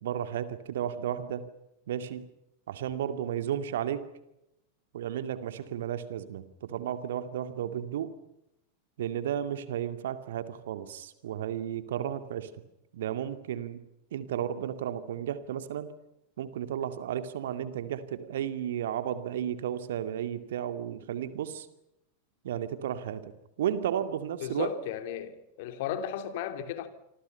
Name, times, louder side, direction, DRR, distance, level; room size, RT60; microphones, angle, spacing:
voice 1, 0.0-1.5 1.9-2.3 2.7-4.1 4.9-8.1 9.0-12.5 12.9-13.8 14.1-15.9 16.4-21.7 22.4-23.3 23.6-24.7, right 10 dB, 60° right, 2.3 m, -33 dB
voice 2, 24.4-26.9, left 9 dB, 50° left, 3.2 m, -35 dB
27.0 x 26.5 x 5.6 m
figure-of-eight pair, 90°, 0 cm